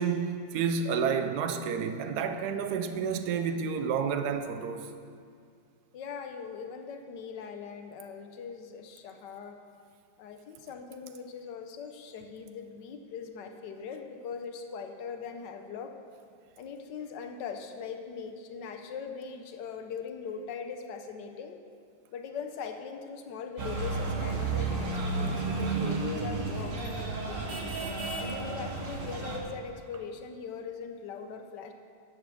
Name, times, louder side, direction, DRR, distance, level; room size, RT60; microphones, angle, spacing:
voice 1, 0.0-4.9, right 6 dB, 70° right, 8 dB, 1.0 m, -30 dB
voice 2, 5.9-9.6 10.2-15.9 16.6-21.6 22.1-27.6 28.2-31.7, left 6 dB, 65° left, 6 dB, 1.3 m, -41 dB
sound 1, 23.6-29.4, right 3 dB, 45° right, 1.4 m, -32 dB
10.0 x 7.5 x 6.4 m, 2.2 s
omnidirectional pair, 2.4 m